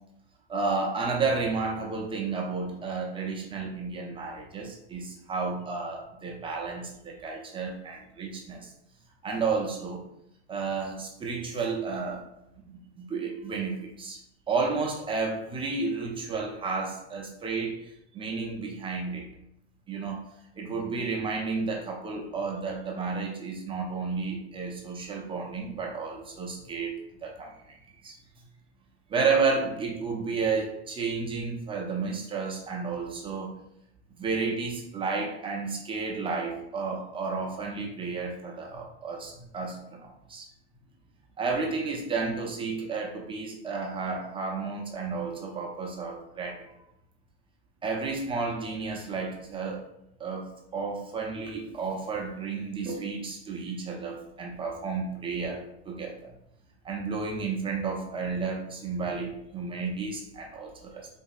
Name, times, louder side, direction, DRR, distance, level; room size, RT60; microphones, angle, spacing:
voice 1, 0.5-8.7 9.2-10.1 10.5-12.2 12.7-14.2 14.5-19.3 19.9-20.3 20.6-27.0 27.2-28.1 29.1-33.5 34.2-40.5 41.4-46.7 47.8-49.8 50.2-56.2 56.8-61.1, right 4 dB, 15° right, -1 dB, 0.4 m, -32 dB
3.8 x 2.6 x 2.4 m, 0.81 s
hypercardioid pair, 120°, 34 cm